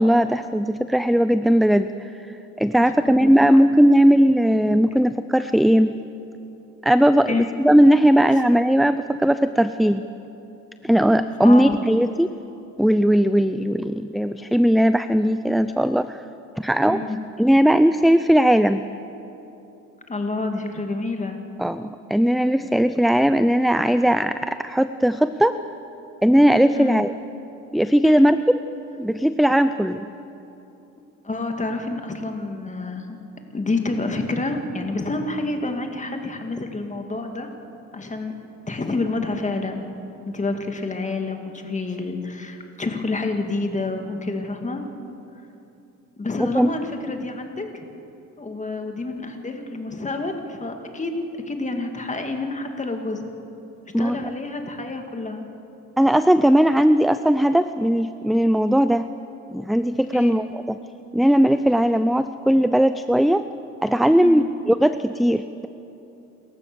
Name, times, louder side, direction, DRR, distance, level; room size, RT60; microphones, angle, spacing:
voice 1, 0.0-1.9 2.6-6.0 6.8-10.0 10.8-12.3 12.8-16.2 16.6-17.0 17.4-18.8 21.6-25.6 26.2-27.1 27.7-28.6 29.0-30.1 46.5-46.7 53.9-54.2 56.0-59.1 59.5-60.6 61.1-63.4 63.8-65.7, equal, ahead, 12 dB, 0.5 m, -18 dB
voice 2, 2.7-3.4 7.3-7.5 11.4-11.8 16.9-17.2 20.1-21.4 26.7-27.1 31.2-33.2 33.5-37.5 37.9-38.3 38.7-39.8 40.2-44.8 46.2-47.9 48.4-51.1 51.5-53.2 53.8-55.5 60.1-60.4 64.2-64.5, left 3 dB, 25° left, 4 dB, 2.4 m, -28 dB
28.5 x 14.5 x 7.0 m, 2.9 s
cardioid pair, 90°, 30 cm